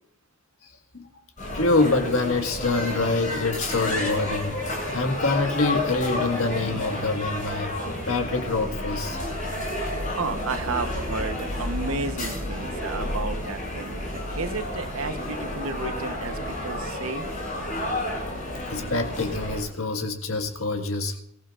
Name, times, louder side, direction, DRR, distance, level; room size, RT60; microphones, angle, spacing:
voice 1, 0.6-1.1 1.5-7.7 8.1-9.2 18.7-21.2, left 3 dB, 85° left, 4 dB, 1.7 m, -26 dB
sound 1, 1.4-19.6, left 1 dB, 35° left, 7.4 m, -31 dB
voice 2, 10.2-16.4 16.6-17.2, right 3 dB, 85° right, 9 dB, 0.9 m, -32 dB
24.0 x 14.5 x 2.5 m, 0.70 s
head